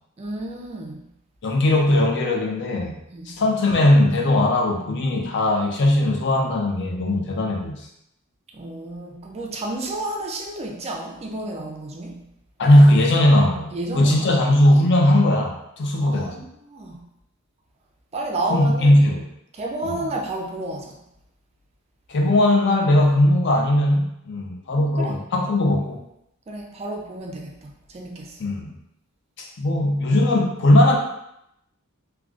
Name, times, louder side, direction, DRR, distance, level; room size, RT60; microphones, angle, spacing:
voice 1, 0.2-1.0 3.1-3.4 8.5-12.2 13.7-14.3 16.0-17.0 18.1-19.0 19.5-21.0 24.7-25.1 26.5-28.4, right 2 dB, 30° right, 1 dB, 0.4 m, -31 dB
voice 2, 1.4-3.0 3.3-7.9 12.6-16.4 18.5-19.2 19.8-20.0 22.1-26.0 28.4-28.8 29.4-31.0, left 1 dB, 55° left, 1 dB, 0.5 m, -18 dB
3.6 x 2.2 x 2.4 m, 0.80 s
head